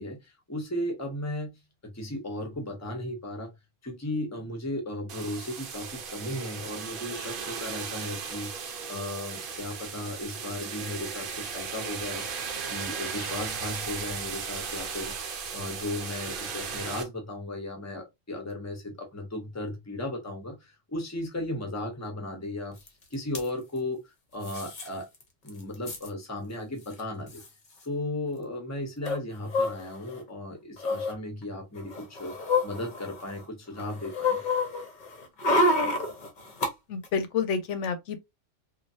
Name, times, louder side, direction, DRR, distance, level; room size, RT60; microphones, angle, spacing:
voice 1, 0.0-1.5 1.8-3.5 3.8-8.5 8.9-15.2 15.5-22.8 23.1-25.1 25.4-27.4 27.8-32.4 32.6-34.4, left 1 dB, 15° left, 0.8 m, -35 dB
sound 1, 5.1-17.0, right 6 dB, 55° right, 0.7 m, -36 dB
sound 2, 22.9-23.0 23.1-23.4 24.4-24.9 25.2-25.3 25.5-26.1 26.9-27.0 27.3-27.5 29.0-30.2 30.8-31.1 31.8-33.4 33.8-36.7 37.0-37.1, left 2 dB, 45° left, 0.8 m, -28 dB
voice 2, 36.9-38.2, left 6 dB, 80° left, 0.9 m, -29 dB
3.2 x 2.3 x 2.6 m
omnidirectional pair, 1.2 m